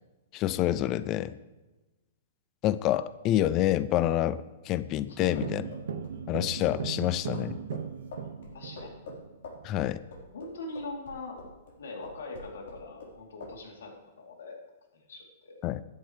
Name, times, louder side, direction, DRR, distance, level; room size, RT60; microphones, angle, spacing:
voice 1, 0.3-1.4 2.6-5.7 6.3-7.6 9.6-10.0 15.6-15.8, left 13 dB, 20° left, 16 dB, 0.4 m, -27 dB
sound 1, 5.2-9.7, right 7 dB, 65° right, 0.9 m, -38 dB
sound 2, 5.3-11.7 12.0-13.1 13.4-13.6, left 3 dB, 60° left, 4.3 m, -45 dB
voice 2, 8.2-9.0 10.3-11.4 11.8-14.6 14.9-15.6, left 2 dB, 85° left, 0 dB, 3.3 m, -42 dB
13.5 x 10.5 x 3.3 m, 1.1 s
hypercardioid pair, 170°, 0 cm